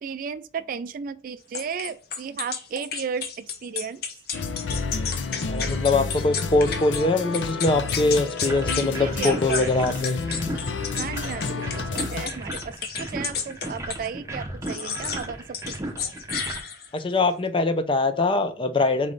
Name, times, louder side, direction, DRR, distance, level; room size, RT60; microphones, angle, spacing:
voice 1, 0.0-4.0 8.9-9.7 11.0-15.8, right 6 dB, 50° right, 0.3 m, -34 dB
sound 1, 1.5-7.0 7.3-8.9 9.2-14.1 14.7-15.3 15.5-17.0, left 6 dB, 55° left, 0.8 m, -32 dB
sound 2, 4.3-12.3, left 4 dB, 85° left, 0.6 m, -30 dB
voice 2, 5.5-10.2 16.9-19.1, left 2 dB, 30° left, 0.5 m, -23 dB
sound 3, 8.5-16.6, right 1 dB, 15° right, 0.7 m, -36 dB
4.1 x 3.2 x 3.8 m
head